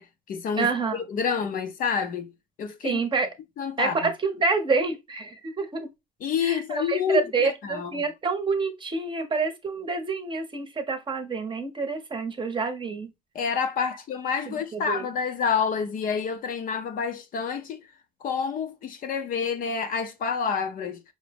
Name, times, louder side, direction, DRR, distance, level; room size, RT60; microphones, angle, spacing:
voice 1, 0.0-2.3 2.6-3.0 3.6-4.1 6.2-8.0 13.3-17.8 18.2-21.0, left 6 dB, 55° left, 0.7 m, -28 dB
voice 2, 0.6-1.0 2.8-3.3 3.8-5.9 6.4-13.1 14.5-15.0, right 4 dB, 30° right, 0.8 m, -27 dB
5.0 x 2.1 x 3.3 m
cardioid pair, 110°, 17 cm